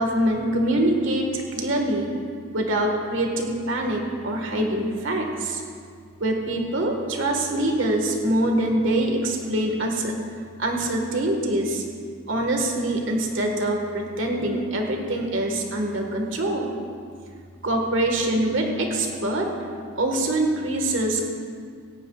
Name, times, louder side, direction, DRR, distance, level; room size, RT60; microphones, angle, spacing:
voice 1, 0.0-2.1 2.5-5.6 6.2-10.1 10.6-11.8 12.3-16.7 17.6-19.5 19.9-21.3, right 1 dB, 65° right, 2 dB, 1.6 m, -24 dB
18.0 x 14.5 x 2.4 m, 2.1 s
head